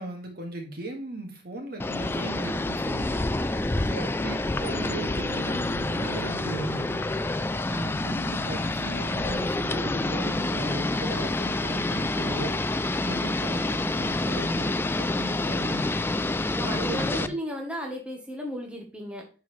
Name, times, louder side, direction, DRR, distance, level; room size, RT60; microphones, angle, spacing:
voice 1, 0.0-3.2 3.8-7.0 7.7-12.6 13.0-16.0 16.6-17.3, right 2 dB, 55° right, 2 dB, 2.1 m, -37 dB
sound 1, 1.8-17.3, left 2 dB, 10° left, 0.3 m, -28 dB
Bowed string instrument, 4.6-10.4, left 5 dB, 80° left, 0.5 m, -45 dB
sound 2, 5.6-5.8 6.6-6.8 7.6-7.8 8.6-8.8 9.6-9.8 10.6-10.8 11.6-11.8 12.6-12.8, left 1 dB, 35° left, 1.5 m, -50 dB
voice 2, 16.6-19.3, equal, 5° right, 1 dB, 1.3 m, -34 dB
11.0 x 4.7 x 3.3 m, 0.34 s
head